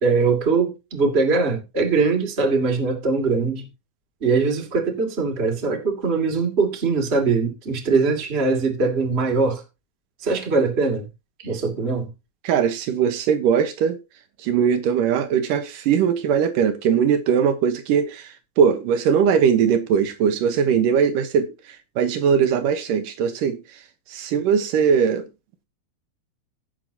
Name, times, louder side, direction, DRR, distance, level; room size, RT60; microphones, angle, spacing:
voice 1, 0.0-3.7 4.2-9.6 10.2-11.1 11.4-12.1, right 4 dB, 20° right, 2.2 m, -21 dB
voice 2, 12.4-14.0 14.4-23.8 24.1-25.3, right 7 dB, 70° right, 2.6 m, -20 dB
17.0 x 7.0 x 2.9 m
omnidirectional pair, 4.3 m